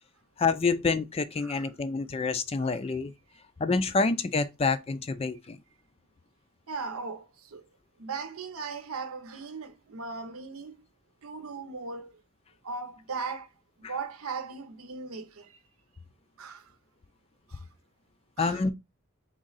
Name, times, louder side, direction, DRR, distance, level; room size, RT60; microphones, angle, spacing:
voice 1, 0.4-3.1 3.6-5.6 18.4-18.7, left 4 dB, 30° left, 0.3 m, -27 dB
voice 2, 1.4-1.7 2.6-2.8 6.7-7.6 8.0-10.8 11.2-12.1 12.6-13.5 13.8-15.6 16.4-16.7 17.5-17.6 18.4-18.7, right 4 dB, 90° right, 0.7 m, -38 dB
3.7 x 3.1 x 3.9 m
head